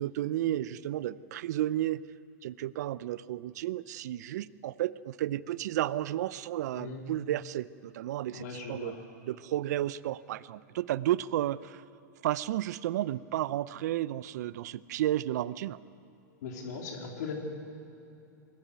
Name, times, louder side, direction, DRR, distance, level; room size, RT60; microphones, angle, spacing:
voice 1, 0.0-2.0 2.4-8.9 9.2-11.8 12.2-15.8, right 13 dB, 65° right, 19 dB, 0.6 m, -32 dB
voice 2, 6.8-7.1 8.3-9.0 16.4-17.3, left 5 dB, 65° left, 1 dB, 3.3 m, -39 dB
21.5 x 14.0 x 9.4 m, 2.8 s
hypercardioid pair, 120°, 10 cm